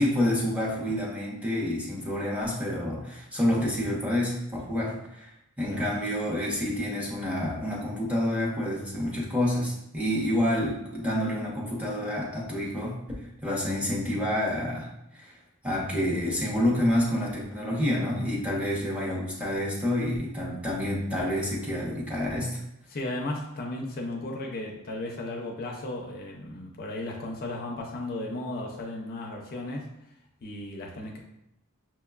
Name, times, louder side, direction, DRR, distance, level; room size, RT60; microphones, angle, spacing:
voice 1, 0.0-5.3 5.6-14.9 15.1-15.3 15.6-22.6, left 1 dB, 5° right, -4 dB, 0.8 m, -28 dB
voice 2, 22.9-29.9 30.4-31.2, left 2 dB, 45° left, 0 dB, 0.5 m, -35 dB
5.8 x 2.2 x 2.3 m, 0.81 s
head